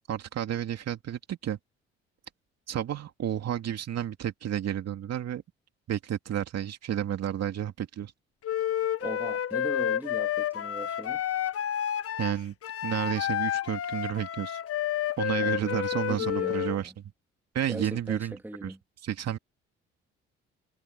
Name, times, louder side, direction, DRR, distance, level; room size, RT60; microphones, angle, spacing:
voice 1, 0.1-1.6 2.7-5.4 5.9-8.1 12.2-12.5 12.8-14.6 15.2-16.9 17.5-18.3 18.6-18.7 19.0-19.4, right 10 dB, 55° right, 2.5 m, -31 dB
Wind instrument woodwind instrument, 8.4-16.8, left 10 dB, 50° left, 1.2 m, -30 dB
voice 2, 9.0-11.2 15.4-15.8 16.1-16.9 17.7-18.8, right 1 dB, 5° right, 2.8 m, -39 dB
hypercardioid pair, 55°, 31 cm